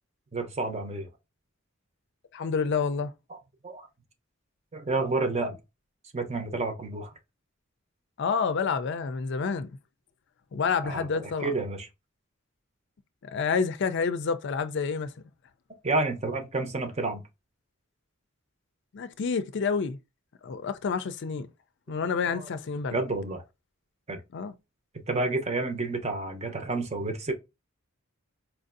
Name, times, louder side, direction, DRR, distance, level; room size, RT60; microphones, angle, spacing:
voice 1, 0.3-1.1 3.6-3.9 4.7-5.6 6.1-7.1 10.8-11.9 15.8-17.2 22.3-22.5 22.9-23.4 24.1-24.2 25.1-27.3, right 3 dB, 30° right, 0.8 m, -30 dB
voice 2, 2.3-3.1 8.2-9.8 10.5-11.5 13.2-15.1 18.9-20.0 20.4-21.5 21.9-23.0 24.3-24.5, left 5 dB, 60° left, 0.4 m, -28 dB
4.5 x 2.6 x 2.5 m
head